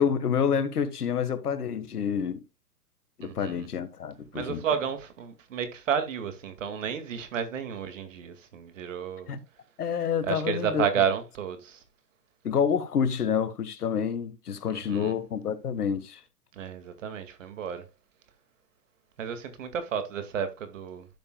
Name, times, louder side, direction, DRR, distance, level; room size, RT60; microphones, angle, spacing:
voice 1, 0.0-2.4 3.2-4.6 9.3-9.4 9.8-10.8 12.4-16.2, left 7 dB, 70° left, 1.6 m, -28 dB
voice 2, 3.2-3.7 4.3-9.3 10.2-11.8 14.7-15.1 16.5-17.8 19.2-21.1, right 7 dB, 50° right, 2.3 m, -31 dB
12.5 x 7.0 x 2.3 m
hypercardioid pair, 145°, 48 cm